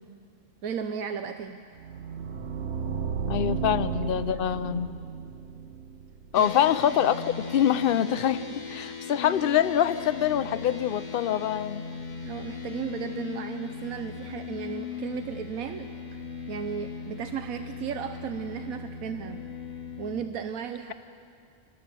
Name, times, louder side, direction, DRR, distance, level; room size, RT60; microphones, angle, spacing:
voice 1, 0.6-1.6 3.4-3.5 4.0-4.4 6.4-6.5 12.2-19.5 20.0-20.9, right 7 dB, 90° right, 7 dB, 1.2 m, -35 dB
sound 1, 1.8-6.7, right 6 dB, 55° right, 1.2 m, -34 dB
voice 2, 3.3-4.9 6.3-11.9, left 10 dB, 50° left, 12 dB, 0.7 m, -25 dB
sound 2, 6.3-20.2, left 6 dB, 35° left, 1.3 m, -38 dB
25.0 x 19.5 x 7.5 m, 2.3 s
omnidirectional pair, 1.4 m